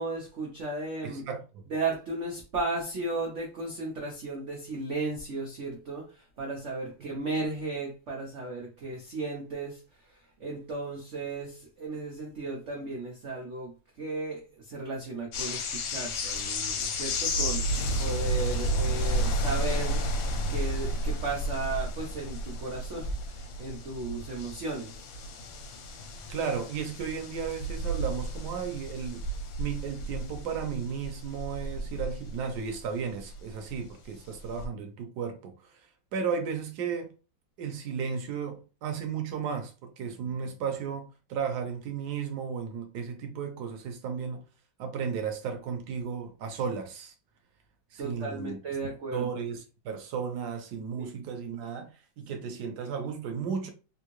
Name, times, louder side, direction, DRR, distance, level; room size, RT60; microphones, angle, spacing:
voice 1, 0.0-1.3 1.7-25.0 48.0-49.3 51.0-51.1, right 3 dB, 90° right, 0.6 m, -35 dB
voice 2, 1.0-1.4 26.3-29.3 29.6-35.7 36.1-37.1 37.6-44.4 44.8-47.1 47.9-48.6 49.1-49.6 49.8-51.9 52.2-53.7, right 6 dB, 70° right, 1.0 m, -34 dB
sound 1, 15.3-33.9 34.2-34.7, equal, 75° left, 1.4 m, -32 dB
3.5 x 2.6 x 3.0 m
omnidirectional pair, 2.3 m